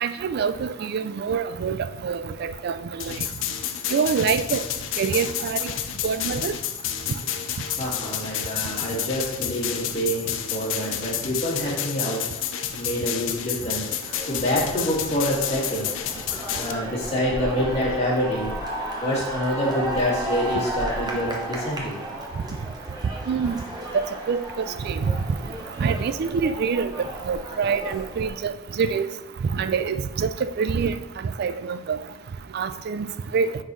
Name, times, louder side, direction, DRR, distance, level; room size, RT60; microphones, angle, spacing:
voice 1, 0.0-1.8 2.0-2.7 3.1-3.2 3.9-4.6 5.0-5.7 6.0-6.5 23.3-23.6 23.9-24.4 24.8-25.1 25.8-26.9 27.3-29.1 29.5-31.0 31.4-32.0 32.5-33.5, right 6 dB, 55° right, 12 dB, 0.3 m, -25 dB
sound 1, 3.0-16.7, left 10 dB, 65° left, 0.5 m, -30 dB
voice 2, 7.8-12.2 12.7-15.9 16.6-18.5 19.0-22.0, equal, 35° left, -6 dB, 2.1 m, -26 dB
sound 2, 14.1-28.3, right 1 dB, 20° right, 0.9 m, -34 dB
9.1 x 4.1 x 3.1 m, 1.0 s
head